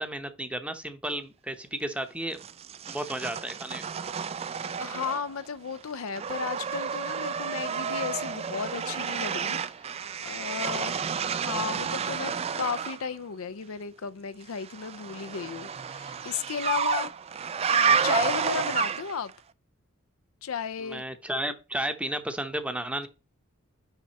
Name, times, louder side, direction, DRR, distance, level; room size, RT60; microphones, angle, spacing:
voice 1, 0.0-2.5 2.9-3.9 10.9-11.0 20.8-23.1, right 1 dB, 5° right, 0.8 m, -33 dB
sound 1, 2.4-5.5 5.7-13.0 14.6-19.3, right 6 dB, 30° right, 0.3 m, -30 dB
voice 2, 4.8-11.0 11.4-17.1 17.7-19.3 20.4-21.0, left 6 dB, 80° left, 0.5 m, -34 dB
5.9 x 5.3 x 4.1 m
head